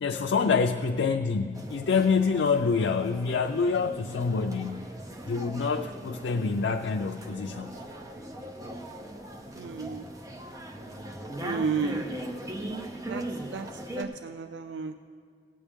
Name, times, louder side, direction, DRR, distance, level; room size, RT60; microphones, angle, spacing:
voice 1, 0.0-4.9 5.3-7.8, left 5 dB, 85° left, 4 dB, 0.4 m, -26 dB
sound 1, 1.5-14.0, right 1 dB, 20° right, 0.7 m, -40 dB
voice 2, 9.5-10.0 11.4-12.0 13.1-13.2 13.5-13.7 14.0-15.0, right 5 dB, 80° right, 8 dB, 0.4 m, -32 dB
16.5 x 8.5 x 3.5 m, 2.2 s
head